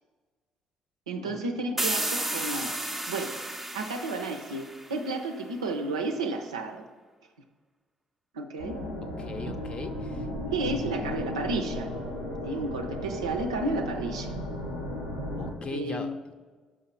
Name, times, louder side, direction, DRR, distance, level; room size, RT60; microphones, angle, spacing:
voice 1, 1.1-2.7 3.1-3.3 3.7-6.9 8.3-8.8 10.5-11.9 12.4-14.3 15.7-16.2, right 2 dB, 75° right, 5 dB, 0.5 m, -32 dB
sound 1, 1.8-5.4, right 1 dB, 5° right, 0.5 m, -33 dB
sound 2, 8.6-15.5, left 1 dB, 85° left, 1.0 m, -35 dB
voice 2, 9.2-10.3 15.3-16.3, left 3 dB, 35° left, 8 dB, 0.7 m, -39 dB
6.0 x 5.6 x 4.6 m, 1.4 s
figure-of-eight pair, 45°, 3 cm